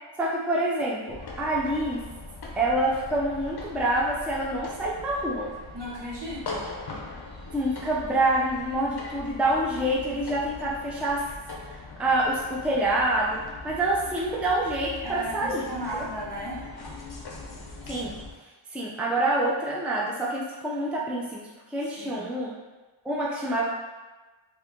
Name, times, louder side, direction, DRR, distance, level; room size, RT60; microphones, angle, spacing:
voice 1, 0.2-2.0 2.6-5.5 7.5-11.2 12.0-15.6 15.9-16.0 17.9-18.2 18.7-22.5 23.0-23.7, right 1 dB, 5° right, -5 dB, 0.5 m, -26 dB
sound 1, 1.1-18.3, left 3 dB, 50° left, 0.7 m, -41 dB
voice 2, 5.7-6.7 15.0-16.6 21.8-22.2, right 1 dB, 55° right, -7 dB, 1.1 m, -36 dB
2.7 x 2.5 x 3.5 m, 1.2 s
wide cardioid pair, 55°, 50 cm